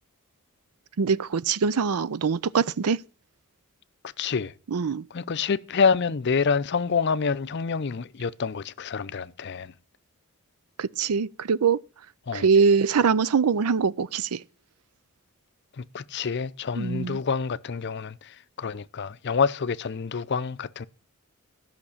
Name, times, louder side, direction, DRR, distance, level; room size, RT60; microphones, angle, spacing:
voice 1, 1.0-3.0 4.7-5.1 10.8-11.8 12.3-14.4 16.8-17.2, right 5 dB, 85° right, 0.5 m, -23 dB
voice 2, 4.2-4.5 5.1-9.7 12.3-12.5 15.8-20.9, left 5 dB, 50° left, 0.5 m, -27 dB
13.5 x 5.9 x 8.5 m
head